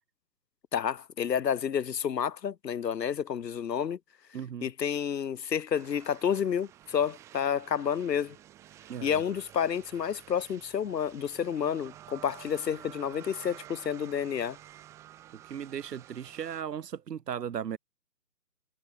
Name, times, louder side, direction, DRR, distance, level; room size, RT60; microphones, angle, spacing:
voice 1, 0.7-4.0 4.6-8.4 9.0-14.6, left 8 dB, 85° left, 1.0 m, -30 dB
voice 2, 4.3-4.7 8.9-9.2 15.3-17.8, right 8 dB, 75° right, 1.0 m, -37 dB
sound 1, 5.7-16.6, right 13 dB, 5° right, 1.5 m, -51 dB
hypercardioid pair, 165°, 48 cm